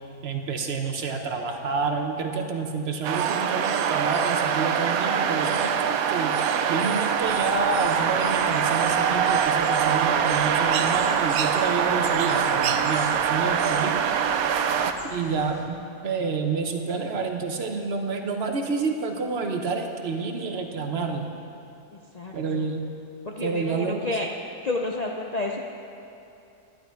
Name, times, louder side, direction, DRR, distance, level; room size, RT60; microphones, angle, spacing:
voice 1, 0.2-6.3 6.7-13.9 15.1-15.8 16.0-21.3 22.3-22.8 23.4-24.1, right 4 dB, 50° right, 4 dB, 1.0 m, -28 dB
sound 1, 3.0-14.9, right 7 dB, 75° right, 1.0 m, -23 dB
sound 2, 7.2-15.6, right 1 dB, 25° right, 1.7 m, -47 dB
voice 2, 21.9-22.6 23.3-24.3 24.6-25.6, left 2 dB, 55° left, 0 dB, 0.4 m, -30 dB
11.5 x 11.0 x 4.6 m, 2.7 s
omnidirectional pair, 1.6 m